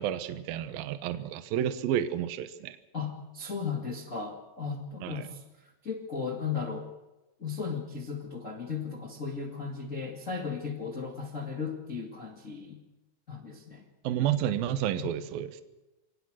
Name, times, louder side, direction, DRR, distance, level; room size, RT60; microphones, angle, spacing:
voice 1, 0.0-2.8 5.0-5.3 14.0-15.5, right 10 dB, 70° right, 11 dB, 2.5 m, -30 dB
voice 2, 2.9-5.4 5.8-6.9 7.4-12.8 13.3-13.8 15.0-15.1, left 5 dB, 70° left, 1 dB, 0.7 m, -36 dB
23.5 x 18.5 x 6.3 m, 1.0 s
omnidirectional pair, 5.2 m